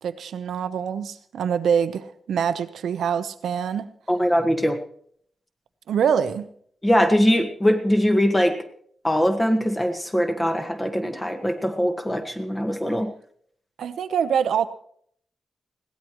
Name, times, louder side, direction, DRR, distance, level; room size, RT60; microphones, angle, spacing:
voice 1, 0.0-3.9 5.9-6.5 13.8-14.7, right 7 dB, 90° right, 11 dB, 0.9 m, -24 dB
voice 2, 4.1-4.8 6.8-8.6 9.0-13.1, equal, 10° left, 5 dB, 1.6 m, -21 dB
21.0 x 17.0 x 3.2 m, 0.63 s
wide cardioid pair, 135°, 0 cm